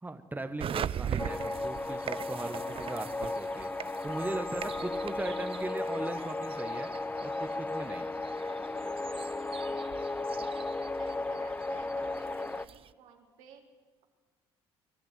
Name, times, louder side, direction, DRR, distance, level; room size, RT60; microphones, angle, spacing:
voice 1, 0.0-6.9 7.2-8.1, right 2 dB, 15° right, 8 dB, 1.5 m, -39 dB
sound 1, 0.6-12.9, right 9 dB, 45° right, 0.6 m, -42 dB
sound 2, 1.2-12.7, left 2 dB, 15° left, 0.6 m, -35 dB
voice 2, 9.6-13.7, right 6 dB, 75° right, 2 dB, 3.1 m, -55 dB
23.5 x 12.0 x 9.5 m, 1.4 s
hypercardioid pair, 60°, 13 cm